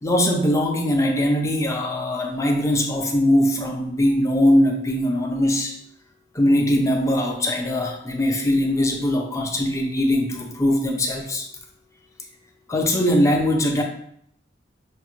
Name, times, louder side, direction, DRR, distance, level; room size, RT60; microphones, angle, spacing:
voice 1, 0.0-5.7 6.3-11.4 12.7-13.8, left 1 dB, 15° left, 2 dB, 0.5 m, -21 dB
5.6 x 2.1 x 3.0 m, 0.70 s
head